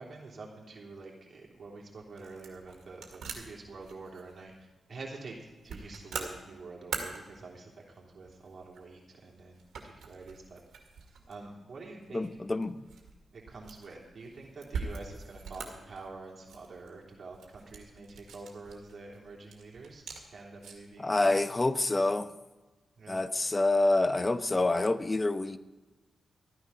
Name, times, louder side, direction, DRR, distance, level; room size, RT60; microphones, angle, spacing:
voice 1, 0.0-4.5 4.9-10.6 11.3-12.3 13.3-20.0 20.3-21.4 23.0-23.2, right 3 dB, 60° right, -2 dB, 3.2 m, -47 dB
sound 1, 1.4-21.0, right 5 dB, 85° right, 2.0 m, -45 dB
voice 2, 12.1-12.9 21.0-22.3 23.1-25.6, left 2 dB, 30° left, 12 dB, 0.8 m, -27 dB
14.0 x 9.6 x 5.6 m, 1.2 s
cardioid pair, 60°, 0 cm